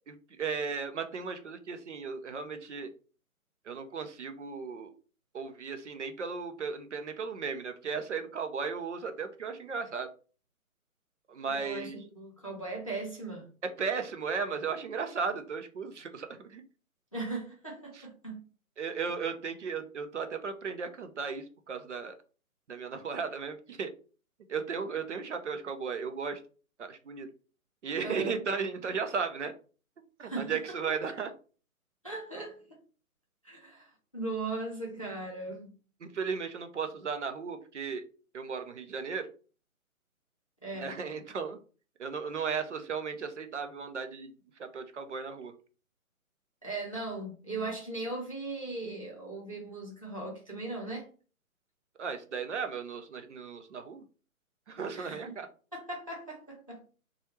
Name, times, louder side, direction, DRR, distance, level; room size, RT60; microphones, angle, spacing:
voice 1, 0.1-2.9 3.7-4.9 5.3-10.1 11.3-12.0 13.6-16.6 17.9-18.1 18.8-22.1 22.7-23.9 24.5-26.4 26.8-27.3 27.8-29.5 30.2-31.3 36.0-38.0 38.3-39.3 40.7-41.6 42.0-44.3 44.6-45.5 52.0-54.0 54.7-55.5, right 5 dB, 55° right, 0.5 m, -35 dB
voice 2, 11.5-13.5 17.1-18.4 28.0-28.4 30.2-30.6 32.0-32.8 33.4-35.7 40.6-40.9 46.6-51.1 54.9-55.2 55.7-56.8, right 2 dB, 25° left, 0.4 m, -38 dB
3.0 x 2.3 x 2.8 m
figure-of-eight pair, 145°, 44 cm